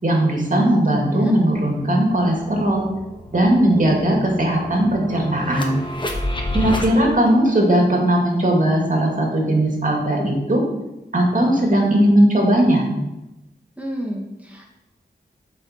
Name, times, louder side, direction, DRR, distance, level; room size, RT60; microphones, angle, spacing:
voice 1, 0.0-2.9 3.3-5.8 6.5-10.6 11.1-12.8, right 1 dB, 45° right, -1 dB, 2.2 m, -18 dB
voice 2, 0.7-1.3 13.8-14.7, equal, 10° right, -1 dB, 2.1 m, -31 dB
sound 1, 1.5-1.6 1.9-6.9, left 1 dB, 25° left, 1.2 m, -30 dB
7.7 x 4.7 x 5.9 m, 0.96 s
wide cardioid pair, 50°, 19 cm